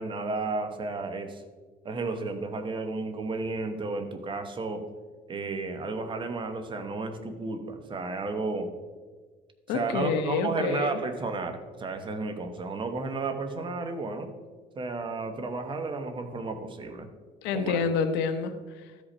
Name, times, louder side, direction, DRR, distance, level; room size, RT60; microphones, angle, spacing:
voice 1, 0.0-1.4 1.8-4.8 5.3-8.7 9.7-14.3 14.8-17.1 17.5-17.8, right 3 dB, 30° right, 7 dB, 0.9 m, -32 dB
voice 2, 9.7-11.0 17.4-18.9, left 5 dB, 85° left, 9 dB, 0.8 m, -28 dB
13.0 x 5.2 x 4.3 m, 1.4 s
cardioid pair, 135°, 17 cm